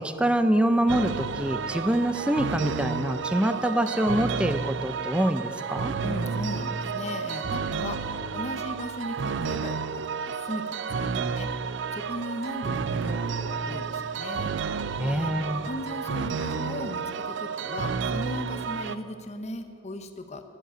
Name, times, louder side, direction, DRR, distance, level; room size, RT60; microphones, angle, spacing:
voice 1, 0.0-5.9 15.0-15.7, right 1 dB, 5° right, 10 dB, 0.5 m, -25 dB
sound 1, 0.9-19.0, right 5 dB, 70° right, 0.4 m, -31 dB
voice 2, 6.0-8.0 8.3-9.8 10.1-11.1 11.3-11.5 11.9-14.5 15.0-15.3 15.6-20.4, left 1 dB, 35° left, 7 dB, 0.8 m, -37 dB
11.0 x 7.6 x 8.8 m, 2.7 s
head